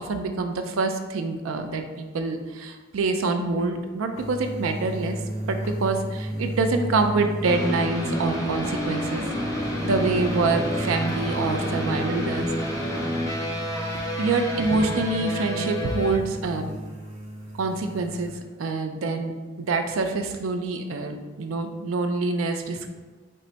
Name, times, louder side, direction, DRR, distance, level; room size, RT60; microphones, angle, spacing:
voice 1, 0.0-5.2 5.5-9.2 9.8-12.5 14.2-16.7 17.5-22.9, right 3 dB, 85° right, 6 dB, 0.4 m, -26 dB
Hammer, 3.6-3.8 4.2-4.4 5.6-5.9 7.0-7.3 8.5-8.8 9.1-9.4 9.9-10.2 11.1-11.4 12.4-12.7 13.9-14.3, left 4 dB, 85° left, 0.4 m, -46 dB
sound 1, 4.1-18.4, right 1 dB, 35° right, 0.5 m, -34 dB
sound 2, 7.4-16.2, equal, 15° left, 0.5 m, -29 dB
4.5 x 2.1 x 3.8 m, 1.3 s
head